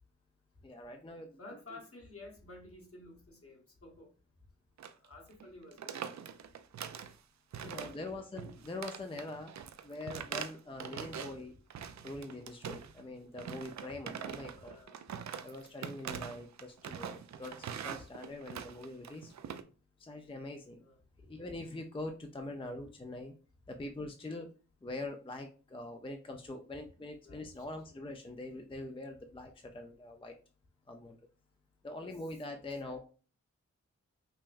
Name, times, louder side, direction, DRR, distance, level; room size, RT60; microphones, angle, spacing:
voice 1, 0.6-1.4 1.7-1.8 7.6-9.5 9.8-11.5 12.0-14.8 15.4-19.3 20.0-20.8 21.3-23.3 23.7-24.5 24.8-30.3 30.9-31.2 31.8-33.0, left 2 dB, 20° left, 0.5 m, -43 dB
voice 2, 1.4-4.1 4.9-6.0 7.7-8.3 12.1-12.2 13.9-14.0 14.5-15.0 16.8-17.0 18.0-18.1 20.8-21.0 22.5-22.9 27.2-27.7 31.9-32.2 32.8-33.0, left 2 dB, 50° left, 1.3 m, -53 dB
sound 1, 4.8-5.1 5.3-5.5 5.7-7.2 7.5-8.1 8.4-11.4 11.7-13.0 13.4-19.6, right 8 dB, 65° right, 0.4 m, -43 dB
5.5 x 2.1 x 2.5 m
cardioid pair, 45°, 30 cm